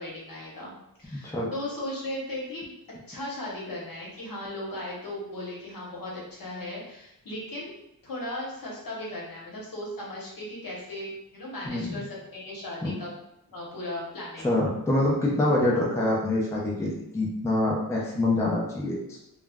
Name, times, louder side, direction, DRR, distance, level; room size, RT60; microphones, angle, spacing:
voice 1, 0.0-2.7 3.1-7.7 8.0-13.1 13.5-14.5, left 1 dB, 60° left, -5 dB, 0.9 m, -37 dB
voice 2, 11.7-12.0 12.8-12.9 14.4-19.2, left 1 dB, 10° left, -4 dB, 0.4 m, -26 dB
2.3 x 2.0 x 3.4 m, 0.83 s
wide cardioid pair, 130°, 38 cm